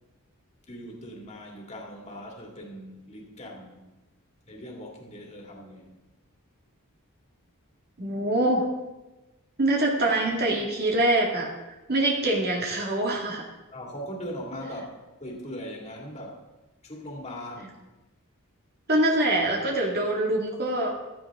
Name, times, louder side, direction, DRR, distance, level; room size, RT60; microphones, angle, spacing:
voice 1, 0.7-3.9 4.5-6.0 13.7-16.4 16.8-17.8, equal, 30° left, 0 dB, 2.4 m, -40 dB
voice 2, 8.0-8.7 9.6-11.5 11.9-13.4 18.9-21.0, right 1 dB, 45° right, -1 dB, 2.1 m, -24 dB
15.0 x 13.5 x 3.7 m, 1.1 s
head